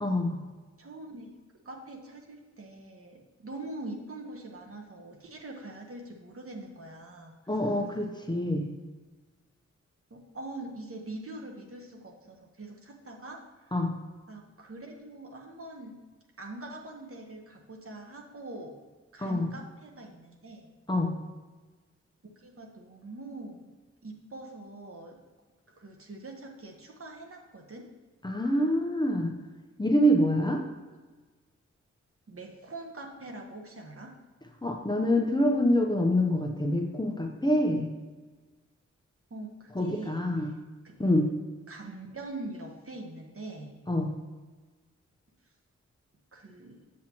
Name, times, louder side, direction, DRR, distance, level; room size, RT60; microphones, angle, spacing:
voice 1, 0.0-0.4 7.5-8.7 13.7-14.0 19.2-19.5 20.9-21.1 28.2-29.3 29.8-30.6 34.6-37.9 39.7-40.5 41.0-41.3 43.9-44.1, equal, 15° left, 2 dB, 0.8 m, -26 dB
voice 2, 0.8-1.3 1.6-7.4 7.6-7.7 10.1-13.4 13.7-13.8 14.3-16.0 16.4-18.8 19.1-20.7 22.4-23.7 24.0-25.2 25.8-27.8 32.3-34.1 39.3-40.5 40.8-40.9 41.3-41.4 41.7-43.7 46.3-46.8, right 2 dB, 50° right, 1 dB, 1.2 m, -43 dB
7.4 x 7.4 x 3.0 m, 1.3 s
wide cardioid pair, 90°, 29 cm